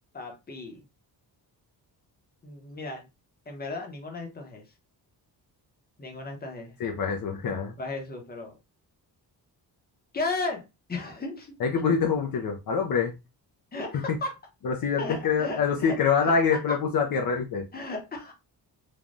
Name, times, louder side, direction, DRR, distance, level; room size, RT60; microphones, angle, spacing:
voice 1, 0.1-0.8 2.4-3.1 3.5-4.6 6.0-6.7 7.8-8.6 10.1-11.6 13.7-14.3 15.0-16.0 16.7-16.8 17.7-18.3, left 3 dB, 25° left, 0.8 m, -35 dB
voice 2, 6.8-7.8 11.6-13.1 13.9-14.2 14.6-17.7, left 6 dB, 55° left, 0.5 m, -25 dB
3.3 x 2.2 x 2.5 m
wide cardioid pair, 145°, 42 cm